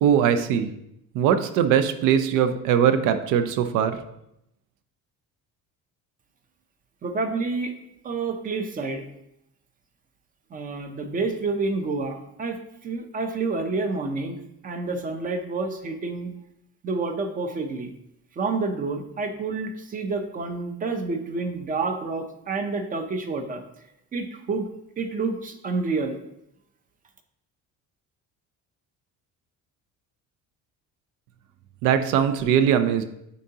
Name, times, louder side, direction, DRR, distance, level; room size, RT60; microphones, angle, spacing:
voice 1, 0.0-0.7 1.1-4.0 31.8-33.0, right 8 dB, 80° right, 9 dB, 0.6 m, -21 dB
voice 2, 7.0-7.7 8.0-9.1 10.5-16.3 16.8-17.9 18.4-23.6 24.1-24.7 25.0-26.2, right 3 dB, 25° right, 6 dB, 0.5 m, -29 dB
9.2 x 3.8 x 2.8 m, 0.80 s
cardioid pair, 165°, 31 cm